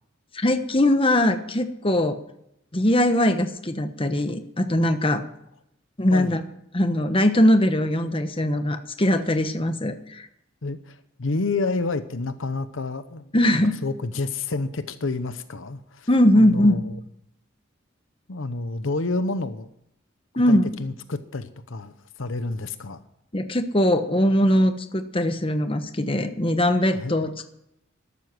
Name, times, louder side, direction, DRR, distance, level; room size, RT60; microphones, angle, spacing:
voice 1, 0.3-2.2 2.7-5.2 6.0-6.4 6.7-10.3 13.3-13.8 16.1-16.8 20.4-20.8 23.3-27.4, left 1 dB, 25° left, 8 dB, 1.1 m, -21 dB
voice 2, 10.6-16.1 16.3-16.9 18.3-19.7 20.5-23.0 26.9-27.2, left 3 dB, 75° left, 12 dB, 0.9 m, -29 dB
13.0 x 12.5 x 6.1 m, 0.78 s
head